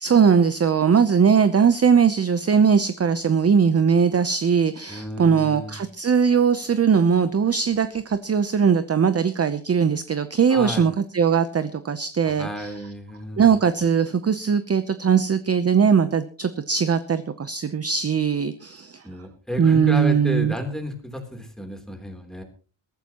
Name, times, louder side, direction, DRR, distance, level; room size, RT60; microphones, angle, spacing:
voice 1, 0.0-12.7 13.4-19.0 19.6-20.6, right 6 dB, 30° right, 11 dB, 0.7 m, -20 dB
voice 2, 4.9-5.8 10.5-10.8 12.3-13.5 19.0-22.4, left 1 dB, ahead, 3 dB, 3.4 m, -32 dB
22.0 x 14.0 x 3.0 m, 0.38 s
wide cardioid pair, 170°, 49 cm